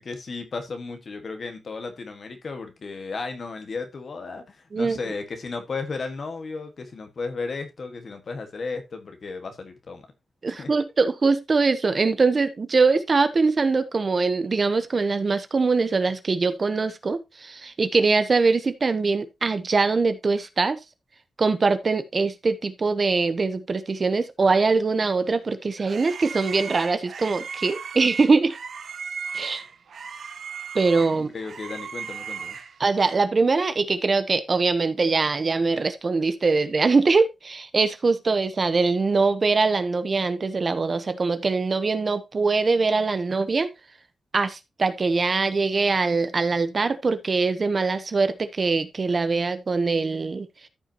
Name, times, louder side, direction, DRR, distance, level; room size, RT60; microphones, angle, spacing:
voice 1, 0.0-10.1 10.5-10.7 31.1-32.6, left 4 dB, 50° left, 1.5 m, -34 dB
voice 2, 10.4-20.8 21.4-28.6 29.3-29.6 30.7-31.3 32.8-43.7 44.3-50.5, right 4 dB, 40° right, 0.9 m, -22 dB
sound 1, 25.2-33.2, right 6 dB, 75° right, 1.1 m, -37 dB
13.5 x 5.7 x 2.9 m
wide cardioid pair, 140°, 0 cm